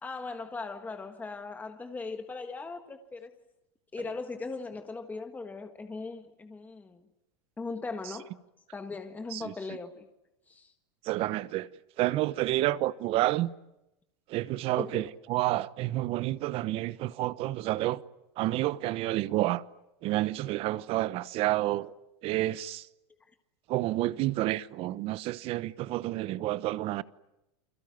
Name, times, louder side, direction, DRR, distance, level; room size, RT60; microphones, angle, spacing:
voice 1, 0.0-3.3 3.9-7.0 7.6-8.3 8.7-10.1 10.5-10.7 14.8-15.0, left 3 dB, 10° left, 1.6 m, -39 dB
voice 2, 11.0-11.7 12.0-13.5 14.3-18.0 18.4-19.6 20.0-21.9 22.2-22.9 23.7-27.0, right 16 dB, 45° right, 1.0 m, -29 dB
29.0 x 22.0 x 9.3 m
supercardioid pair, 135°, 14 cm